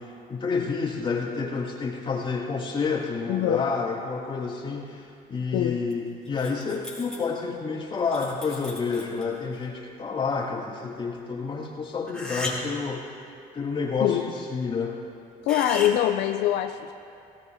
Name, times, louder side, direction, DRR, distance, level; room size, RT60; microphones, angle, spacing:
voice 1, 0.0-13.1 13.5-15.0, left 4 dB, 30° left, -6 dB, 3.1 m, -29 dB
voice 2, 3.3-3.7 5.5-5.8 14.0-14.3 15.4-16.9, left 11 dB, 85° left, 6 dB, 0.5 m, -24 dB
sound 1, 5.9-6.0 6.2-7.2 8.0-9.4 12.1-12.9 15.5-16.0, left 2 dB, 5° left, 4.0 m, -35 dB
18.5 x 18.0 x 2.7 m, 2.5 s
cardioid pair, 110°, 17 cm